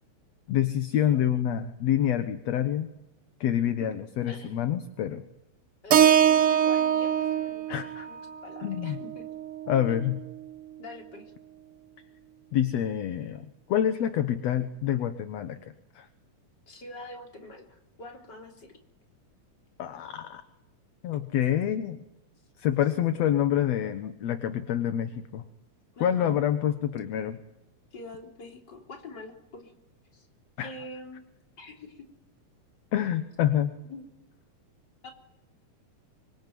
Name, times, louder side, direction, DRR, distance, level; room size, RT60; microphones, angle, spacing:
voice 1, 0.5-2.9 3.4-5.2 7.7-8.1 8.6-9.0 9.7-10.2 12.5-15.6 16.0-16.1 19.8-20.4 21.0-22.0 22.6-25.4 26.0-27.4 30.6-30.7 32.9-33.8, left 10 dB, 65° left, 9 dB, 2.2 m, -27 dB
voice 2, 3.7-4.6 5.8-7.8 8.1-9.3 10.8-11.2 16.7-18.8 25.9-26.4 27.9-29.7 30.1-30.3 30.6-31.2 31.6-32.1 33.8-34.1 35.0-35.1, left 2 dB, 35° left, 2 dB, 4.1 m, -45 dB
Keyboard (musical), 5.9-10.1, right 9 dB, 55° right, 1.7 m, -24 dB
25.0 x 24.5 x 9.3 m, 0.89 s
omnidirectional pair, 3.5 m